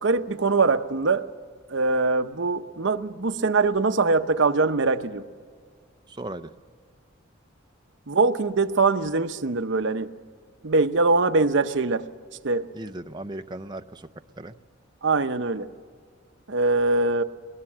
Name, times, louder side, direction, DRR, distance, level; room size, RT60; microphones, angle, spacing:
voice 1, 0.0-1.3 1.7-5.2 8.1-10.1 10.6-12.1 12.4-12.7 15.0-15.7 16.5-17.2, right 3 dB, 65° right, 9 dB, 0.8 m, -22 dB
voice 2, 6.1-6.5 12.7-14.1 14.4-14.6, right 1 dB, 20° right, 8 dB, 0.6 m, -37 dB
21.0 x 20.5 x 7.3 m, 2.1 s
head